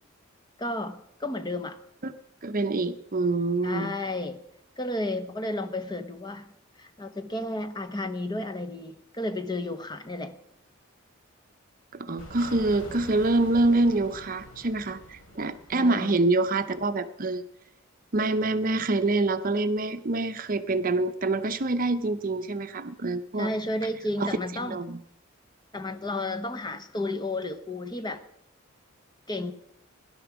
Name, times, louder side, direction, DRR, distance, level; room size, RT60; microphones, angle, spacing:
voice 1, 0.6-1.8 3.6-4.4 4.8-6.5 6.8-10.3 15.7-16.1 23.4-24.8 25.7-28.2 29.3-29.5, left 1 dB, 20° left, 8 dB, 1.0 m, -32 dB
voice 2, 2.4-4.0 11.9-17.4 18.1-23.5 24.2-25.0, right 2 dB, 40° right, 10 dB, 0.7 m, -26 dB
sound 1, 12.2-16.8, left 1 dB, 75° left, 3.5 m, -45 dB
17.0 x 11.5 x 6.0 m, 0.79 s
head